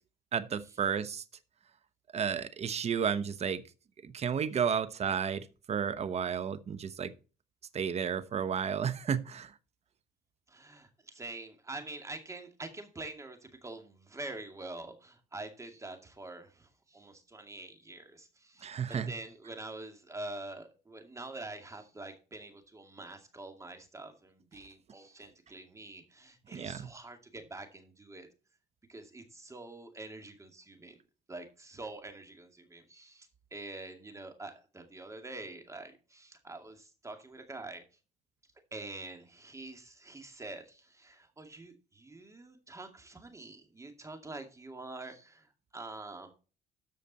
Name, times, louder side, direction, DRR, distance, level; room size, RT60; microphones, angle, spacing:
voice 1, 0.3-1.2 2.1-3.6 4.0-7.1 7.7-9.5 18.6-19.1 26.5-26.9, right 7 dB, 40° right, 1.0 m, -32 dB
voice 2, 10.5-28.3 28.9-31.0 31.3-37.8 38.7-46.3, right 2 dB, 15° right, 2.3 m, -46 dB
13.5 x 5.1 x 4.2 m
cardioid pair, 110°, 17 cm